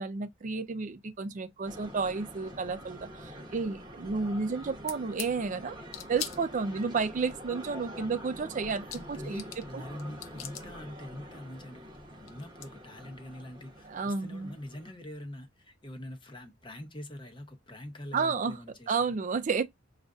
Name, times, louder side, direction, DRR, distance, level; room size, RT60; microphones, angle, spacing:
voice 1, 0.0-5.8 6.1-9.4 9.7-9.8 13.8-14.5 18.1-18.6 18.9-19.6, right 4 dB, 40° right, 0.4 m, -31 dB
sound 1, 1.6-14.9, equal, 20° right, 0.9 m, -46 dB
sound 2, 4.9-5.3 5.9-6.9 8.4-8.5 8.7-9.7 10.0-10.7 11.9-12.0 12.3-12.7, left 10 dB, 85° left, 0.5 m, -40 dB
voice 2, 8.8-11.9 12.2-19.2, left 1 dB, 25° left, 0.8 m, -44 dB
6.3 x 2.4 x 2.4 m
head